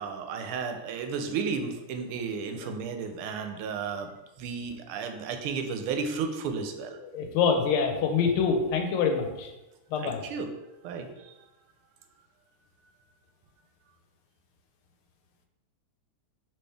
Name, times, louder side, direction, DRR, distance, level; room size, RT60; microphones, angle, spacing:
voice 1, 0.0-4.1 4.4-7.0 10.0-10.5 10.8-11.4, right 5 dB, 90° right, 5 dB, 1.5 m, -33 dB
voice 2, 7.0-9.5 9.9-10.2, left 6 dB, 85° left, 4 dB, 1.5 m, -26 dB
4.4 x 3.2 x 3.3 m, 1.0 s
omnidirectional pair, 2.3 m